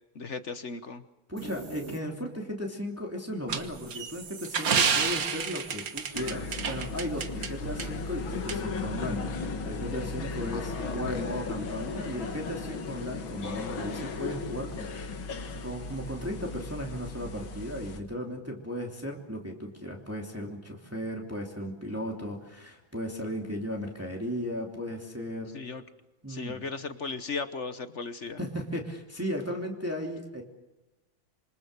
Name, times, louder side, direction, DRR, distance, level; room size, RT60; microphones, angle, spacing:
voice 1, 0.1-1.0 10.5-11.3 25.5-25.8 26.3-28.4, left 4 dB, 45° left, 11 dB, 1.0 m, -37 dB
voice 2, 1.3-15.2 15.5-25.5 26.2-26.6 28.4-30.4, equal, 5° right, 0 dB, 2.8 m, -36 dB
sound 1, 1.4-2.6, right 2 dB, 35° right, 2.3 m, -42 dB
sound 2, 3.5-7.5 7.8-7.9 8.5-8.6, right 6 dB, 50° right, 1.7 m, -29 dB
sound 3, 6.1-18.0, left 4 dB, 75° left, 2.5 m, -36 dB
27.0 x 24.5 x 6.7 m, 1.0 s
omnidirectional pair, 2.1 m